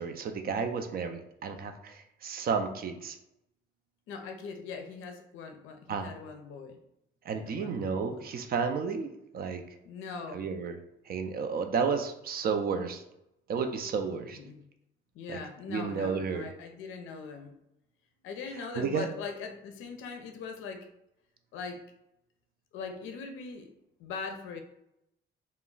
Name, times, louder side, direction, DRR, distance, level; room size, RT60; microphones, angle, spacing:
voice 1, 0.0-3.2 5.9-6.1 7.2-9.6 10.3-10.8 11.1-13.0 13.5-14.4 15.3-15.4 15.7-16.5 18.7-19.1, right 5 dB, 50° right, 7 dB, 0.4 m, -32 dB
voice 2, 4.1-6.8 7.3-8.3 9.8-10.5 14.3-14.6 15.1-17.5 18.2-20.9 21.5-21.8 22.7-23.7 24.0-24.6, left 5 dB, 85° left, 5 dB, 0.4 m, -41 dB
2.2 x 2.0 x 3.8 m, 0.83 s
cardioid pair, 90°, 20 cm